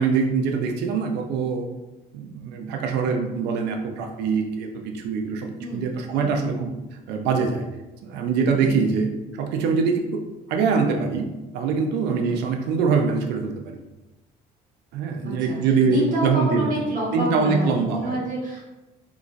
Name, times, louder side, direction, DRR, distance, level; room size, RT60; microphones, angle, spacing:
voice 1, 0.0-1.7 2.1-6.7 7.1-7.7 8.0-9.1 9.4-10.2 10.5-13.8 14.9-16.8 17.1-18.2, right 5 dB, 90° right, 4 dB, 0.5 m, -23 dB
voice 2, 5.6-6.4 8.6-8.8 12.2-12.4 15.2-15.6 15.8-18.6, equal, 55° right, -5 dB, 1.1 m, -28 dB
3.7 x 3.0 x 2.5 m, 1.1 s
cardioid pair, 110°, 17 cm